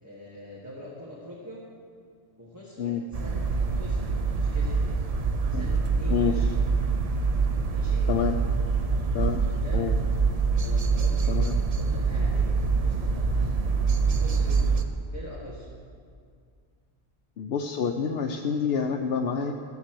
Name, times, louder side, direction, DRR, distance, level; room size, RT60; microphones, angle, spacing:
voice 1, 0.0-1.6 2.4-4.9 5.5-6.6 7.7-8.1 9.4-9.9 10.6-11.4 11.7-13.5 14.1-14.6 15.1-15.7, equal, 15° right, -6 dB, 1.7 m, -43 dB
sound 1, 3.1-14.8, right 4 dB, 40° right, 0.7 m, -25 dB
voice 2, 9.1-9.4 9.7-9.9 11.3-11.5 17.4-19.5, left 7 dB, 65° left, 2 dB, 0.8 m, -27 dB
14.0 x 7.2 x 7.8 m, 2.2 s
omnidirectional pair, 1.2 m